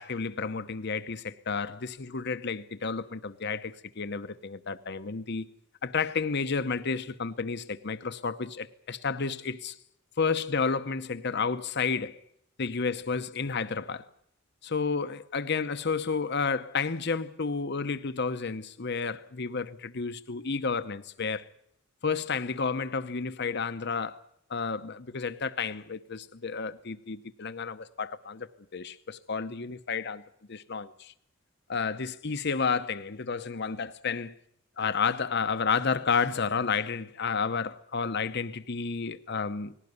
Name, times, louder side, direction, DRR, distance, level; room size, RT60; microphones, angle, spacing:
voice 1, 0.0-5.5 5.8-9.8 10.2-12.2 12.6-14.1 14.6-21.5 22.0-24.2 24.5-28.5 28.7-30.2 30.5-31.1 31.7-34.3 34.8-39.8, left 5 dB, 55° left, 0.9 m, -31 dB
20.0 x 17.5 x 9.5 m
head